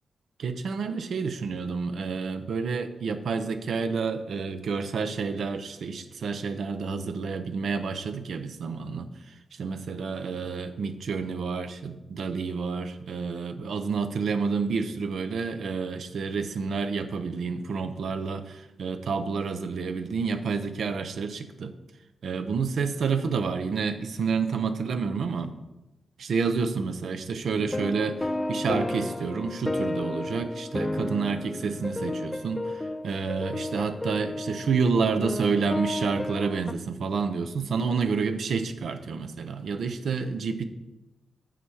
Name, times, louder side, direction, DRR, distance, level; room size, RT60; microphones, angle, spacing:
voice 1, 0.4-9.1 9.6-21.7 22.2-25.5 26.2-40.6, right 5 dB, 70° right, 9 dB, 0.7 m, -29 dB
sound 1, 27.5-36.7, left 1 dB, 15° left, 0.3 m, -32 dB
7.0 x 5.8 x 4.8 m, 0.99 s
cardioid pair, 80°, 0 cm